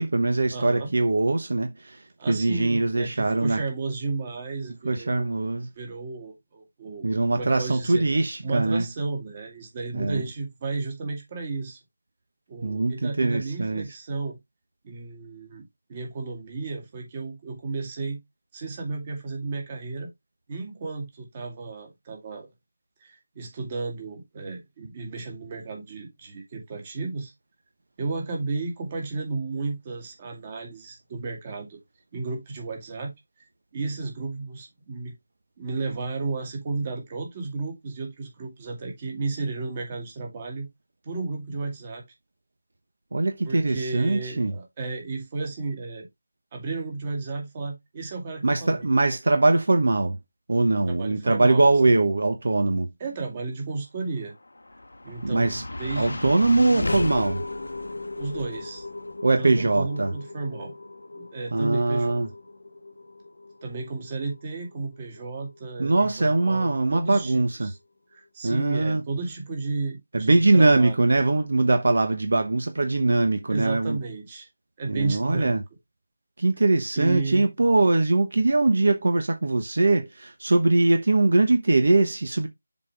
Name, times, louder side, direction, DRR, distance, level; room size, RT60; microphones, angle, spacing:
voice 1, 0.0-3.6 4.8-5.7 7.0-8.9 9.9-10.2 12.6-13.9 43.1-44.5 48.4-50.2 50.5-52.9 55.2-55.6 56.0-57.4 59.2-60.1 61.5-62.3 65.8-67.7 68.4-69.0 70.1-74.0 74.8-75.6 76.4-82.5, right 2 dB, 65° right, 1.1 m, -22 dB
voice 2, 0.5-0.9 2.2-5.2 5.8-7.1 7.4-8.1 8.4-11.8 12.5-14.4 14.8-18.2 18.5-20.1 20.5-22.5 23.0-27.3 28.0-31.8 32.1-33.1 33.7-35.1 35.6-40.7 41.0-42.0 43.4-46.1 46.5-48.9 50.9-51.6 53.0-54.3 55.0-56.3 58.2-58.9 59.4-60.7 61.2-62.2 63.6-67.8 68.1-71.0 73.5-74.5 74.8-75.6 77.0-77.5, right 3 dB, 25° right, 2.2 m, -33 dB
sound 1, 54.3-66.6, left 2 dB, 75° left, 1.0 m, -36 dB
7.2 x 4.3 x 3.4 m
figure-of-eight pair, 165°, 0 cm